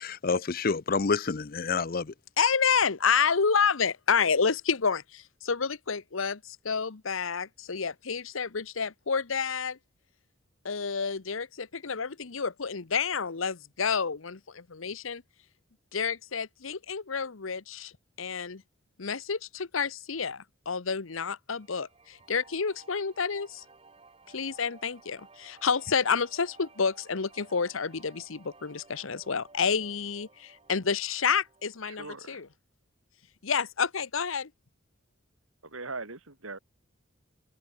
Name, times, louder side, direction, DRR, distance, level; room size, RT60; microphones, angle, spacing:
voice 1, 0.0-2.1, left 4 dB, 45° left, 0.6 m, -28 dB
voice 2, 2.4-5.0 5.5-6.4 6.7-9.7 10.7-11.5 11.8-14.4 14.8-15.2 15.9-17.9 18.2-18.6 19.0-19.4 19.7-20.4 20.7-21.9 22.3-23.5 24.3-25.2 25.5-30.3 30.7-32.4 33.4-34.4, left 6 dB, 75° left, 1.0 m, -29 dB
sound 1, 21.5-32.6, right 3 dB, 30° right, 3.9 m, -57 dB
voice 3, 31.8-32.4 35.6-36.6, right 3 dB, 90° right, 4.2 m, -40 dB
head